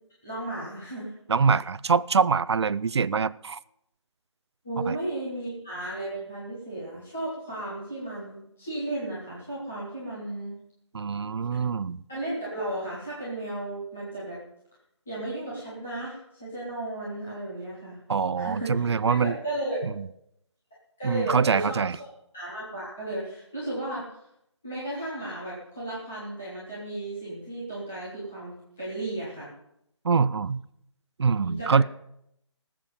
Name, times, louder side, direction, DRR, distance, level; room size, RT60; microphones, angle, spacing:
voice 1, 0.2-1.1 4.6-10.5 11.5-11.6 12.1-14.4 15.1-18.0 18.4-19.8 21.0-21.8 22.3-24.1 24.6-29.5 31.4-31.8, right 1 dB, ahead, -9 dB, 0.4 m, -34 dB
voice 2, 1.3-3.6 4.9-5.0 10.9-12.0 18.1-19.3 19.8-20.1 21.0-22.0 30.0-30.6 31.2-31.8, right 5 dB, 60° right, 19 dB, 0.5 m, -24 dB
18.5 x 7.4 x 5.2 m, 0.79 s
hypercardioid pair, 170°, 16 cm